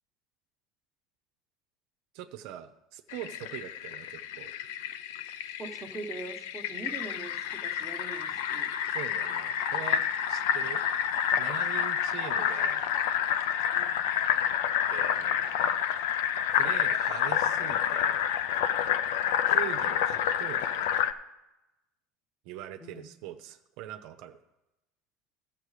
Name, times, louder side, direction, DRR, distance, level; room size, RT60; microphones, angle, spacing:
voice 1, 2.1-4.5 8.9-10.8 11.4-12.9 14.9-15.4 16.5-18.2 19.5-20.9 22.4-24.4, right 12 dB, 70° right, 7 dB, 0.7 m, -42 dB
Fill (with liquid), 3.1-21.1, left 9 dB, 85° left, 0.5 m, -29 dB
voice 2, 5.6-8.7 13.7-14.0 22.8-23.1, right 3 dB, 15° right, 2 dB, 1.1 m, -42 dB
12.0 x 7.4 x 5.0 m, 0.98 s
supercardioid pair, 120°, 0 cm